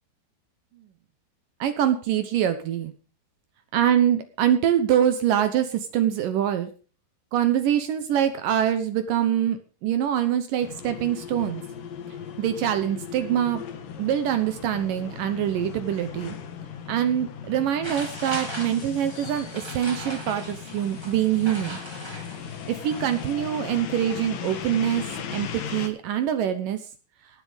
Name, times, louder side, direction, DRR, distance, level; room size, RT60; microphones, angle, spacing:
voice 1, 1.6-2.9 3.7-6.7 7.3-11.6 12.4-13.6 14.0-16.4 16.9-21.8 22.7-25.0 25.3-26.9, right 10 dB, 75° right, 9 dB, 2.0 m, -24 dB
sound 1, 10.6-25.9, left 8 dB, 60° left, 2.9 m, -37 dB
sound 2, 17.8-23.3, right 1 dB, 5° right, 3.4 m, -39 dB
19.0 x 7.6 x 5.2 m, 0.38 s
omnidirectional pair, 5.2 m